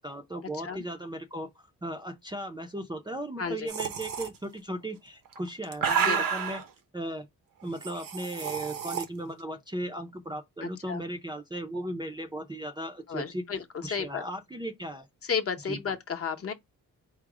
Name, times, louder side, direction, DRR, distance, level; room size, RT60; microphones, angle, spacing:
voice 1, 0.0-6.6 6.9-7.3 7.6-13.4 13.8-15.1 15.7-15.8, right 1 dB, 15° right, 0.4 m, -36 dB
voice 2, 3.4-3.7 6.0-6.2 10.6-11.0 13.1-13.6 13.9-14.2 15.2-16.5, left 6 dB, 45° left, 0.7 m, -32 dB
sound 1, 3.7-4.3 5.3-6.6 7.8-9.0, right 7 dB, 80° right, 0.9 m, -30 dB
4.7 x 2.0 x 4.7 m
wide cardioid pair, 145°, 33 cm